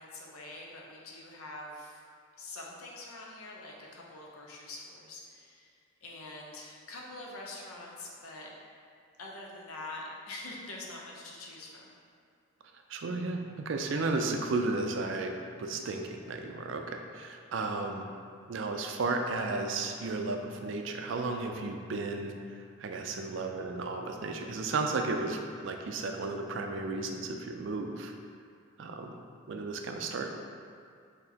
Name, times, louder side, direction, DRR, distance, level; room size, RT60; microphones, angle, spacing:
voice 1, 0.0-2.0 2.4-5.7 6.0-8.5 9.2-12.0, left 2 dB, 90° left, -2 dB, 0.7 m, -45 dB
voice 2, 12.9-18.0 18.5-28.1 28.8-29.1 29.5-30.3, right 3 dB, 60° right, 4 dB, 0.4 m, -34 dB
6.1 x 2.8 x 2.8 m, 2.3 s
head